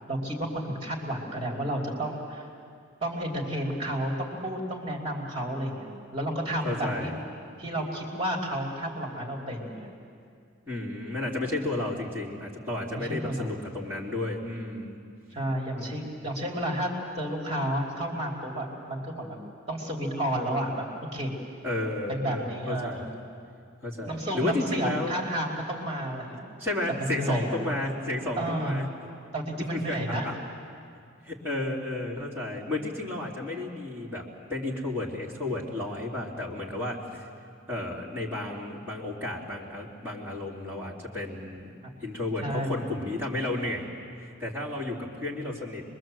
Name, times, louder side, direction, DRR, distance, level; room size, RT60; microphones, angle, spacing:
voice 1, 0.1-2.4 3.0-7.1 7.6-9.9 12.9-13.5 15.3-16.9 17.2-19.4 19.7-20.8 21.1-21.3 22.1-23.1 24.1-26.5 26.9-27.7 28.4-28.9 29.3-30.3 42.4-42.9, right 1 dB, 30° right, -1 dB, 2.9 m, -31 dB
voice 2, 6.6-7.2 10.7-15.0 15.7-16.0 21.6-23.0 23.8-25.1 26.6-28.8 29.7-30.3 31.2-37.2 37.7-43.9 44.2-45.8, left 2 dB, 10° right, -6 dB, 3.1 m, -32 dB
26.5 x 22.0 x 7.7 m, 2.3 s
head